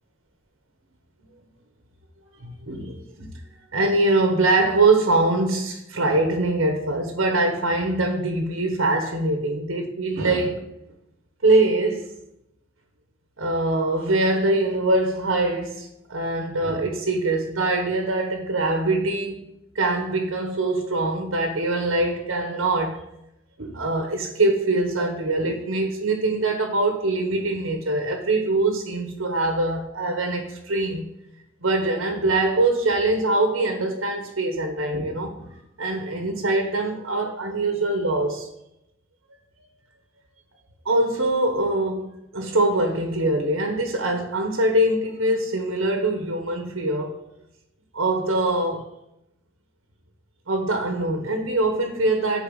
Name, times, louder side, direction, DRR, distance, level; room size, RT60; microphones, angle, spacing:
voice 1, 2.4-3.3 3.7-10.6 11.4-12.0 13.4-19.4 19.7-23.0 23.6-31.1 31.6-38.5 40.8-47.2 47.9-48.8 50.5-52.4, right 2 dB, 70° right, 1.1 m, -23 dB
6.8 x 4.6 x 6.4 m
head